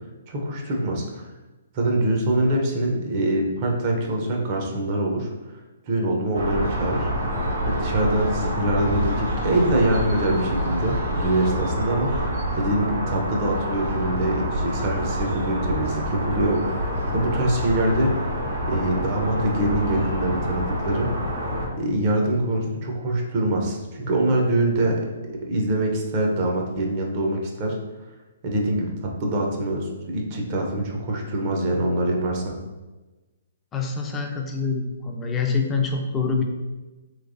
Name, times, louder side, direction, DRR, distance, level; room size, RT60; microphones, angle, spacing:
voice 1, 0.3-1.2 1.7-5.3 5.9-7.1 7.7-18.4 18.6-21.1 21.8-25.1 25.5-27.8 28.4-32.6, right 1 dB, 40° right, 0 dB, 0.8 m, -24 dB
sound 1, 6.3-21.7, equal, 90° right, 1.2 m, -27 dB
voice 2, 33.7-36.4, left 4 dB, 15° left, 2 dB, 0.5 m, -25 dB
3.2 x 3.1 x 2.6 m, 1.2 s
hypercardioid pair, 135°, 0 cm